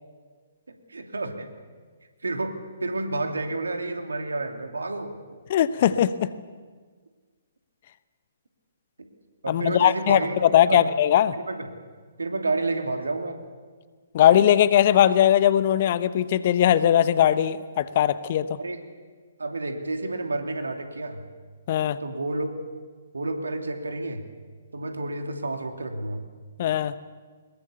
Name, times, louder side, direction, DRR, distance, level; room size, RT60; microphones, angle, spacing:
voice 1, 0.7-1.5 2.2-2.5 2.8-5.1 9.4-10.9 11.5-11.7 12.2-13.4 18.6-18.8 19.4-21.2 22.0-22.5 23.1-24.2 24.7-26.2, right 2 dB, 75° right, 5 dB, 2.7 m, -30 dB
voice 2, 5.5-6.3 9.5-11.4 14.1-18.5 21.7-22.0 26.6-26.9, left 11 dB, 45° left, 15 dB, 1.0 m, -20 dB
22.5 x 21.5 x 7.0 m, 1.5 s
figure-of-eight pair, 130°, 0 cm